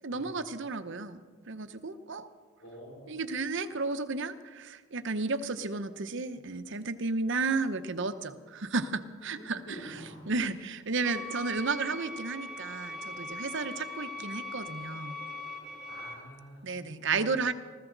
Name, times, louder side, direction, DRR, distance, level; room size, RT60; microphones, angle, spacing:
voice 1, 0.0-1.2 1.5-2.3 3.1-10.0 10.3-15.2 16.6-17.5, right 4 dB, 60° right, 10 dB, 0.9 m, -33 dB
voice 2, 2.6-3.1 9.3-10.2 15.9-17.3, equal, 85° left, -8 dB, 4.7 m, -47 dB
sound 1, 11.0-16.1, left 2 dB, 5° right, 2.4 m, -40 dB
20.5 x 14.5 x 3.9 m, 1.5 s
head